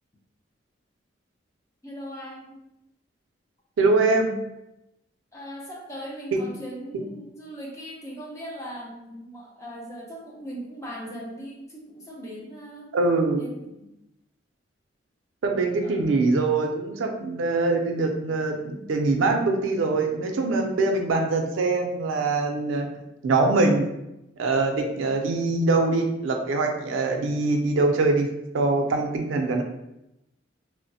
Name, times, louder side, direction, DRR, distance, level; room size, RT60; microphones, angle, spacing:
voice 1, 1.8-2.6 5.3-12.9 13.4-14.0 15.8-16.0, equal, 15° left, -3 dB, 0.5 m, -39 dB
voice 2, 3.8-4.3 6.3-6.4 6.9-7.0 12.9-13.4 15.4-23.0 23.2-23.9 24.4-28.3 28.5-29.6, right 3 dB, 90° right, 3 dB, 0.4 m, -23 dB
3.1 x 2.0 x 2.6 m, 0.89 s
head